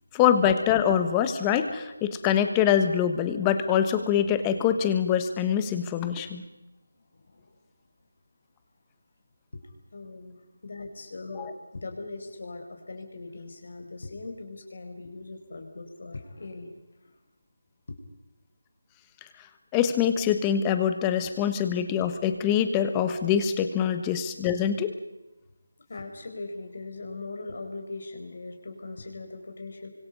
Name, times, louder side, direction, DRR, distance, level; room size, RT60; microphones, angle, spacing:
voice 1, 0.1-6.5 11.4-11.5 19.7-24.9, left 9 dB, 10° left, 9 dB, 1.4 m, -24 dB
voice 2, 7.1-7.6 9.5-16.7 17.0-17.1 17.9-18.0 25.9-29.9, left 3 dB, 50° left, 4 dB, 4.7 m, -40 dB
28.5 x 25.5 x 5.5 m, 1.0 s
figure-of-eight pair, 175°, 0 cm